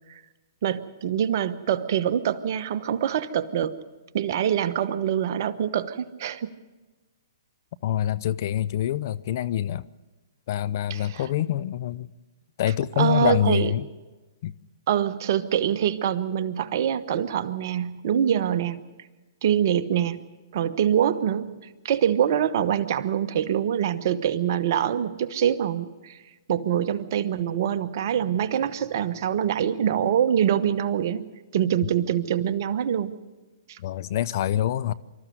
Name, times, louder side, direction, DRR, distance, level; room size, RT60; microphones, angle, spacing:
voice 1, 0.6-3.8 4.1-6.5 10.9-11.3 13.0-13.7 14.9-18.9 19.4-20.2 20.5-21.5 21.8-26.2 26.5-31.3 31.5-33.1 33.7-33.8, right 9 dB, 55° right, 1.1 m, -24 dB
voice 2, 7.8-9.9 10.5-12.1 12.6-13.9 14.4-14.5 33.8-34.9, left 11 dB, 50° left, 0.6 m, -25 dB
25.5 x 13.5 x 7.9 m
hypercardioid pair, 130°, 2 cm